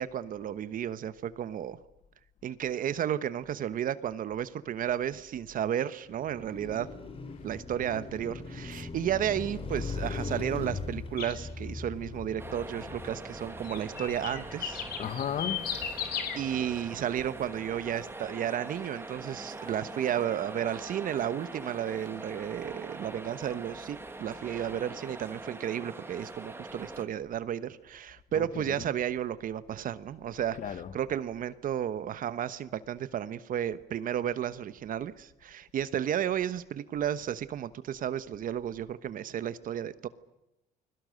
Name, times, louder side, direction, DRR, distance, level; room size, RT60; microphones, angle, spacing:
voice 1, 0.0-1.8 2.4-6.9 7.4-14.9 16.4-40.1, right 10 dB, 55° right, 1.1 m, -33 dB
Car passing by, 6.0-18.3, left 4 dB, 35° left, 3.1 m, -41 dB
sound 1, 11.2-11.4 13.6-16.4, left 9 dB, 70° left, 4.1 m, -35 dB
sound 2, 12.4-27.0, right 2 dB, 15° right, 1.9 m, -43 dB
voice 2, 15.0-15.9 28.3-28.9 30.6-31.0, left 8 dB, 50° left, 1.5 m, -35 dB
29.5 x 22.0 x 6.5 m
cardioid pair, 110°, 17 cm